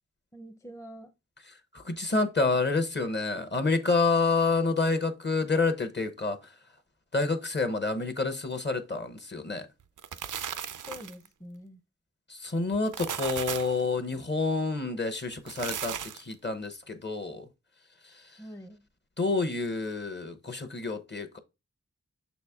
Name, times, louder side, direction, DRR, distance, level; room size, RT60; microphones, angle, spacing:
voice 1, 0.3-1.1 10.7-11.8 18.4-18.8, equal, 10° left, 0.6 m, -45 dB
voice 2, 1.7-6.5 7.1-9.7 12.3-17.5 18.0-18.4 19.2-21.4, left 3 dB, 35° left, 0.9 m, -28 dB
sound 1, 9.8-11.3 12.7-13.8 15.3-16.3, right 8 dB, 80° right, 0.5 m, -36 dB
6.4 x 4.1 x 3.5 m
wide cardioid pair, 105°, 30 cm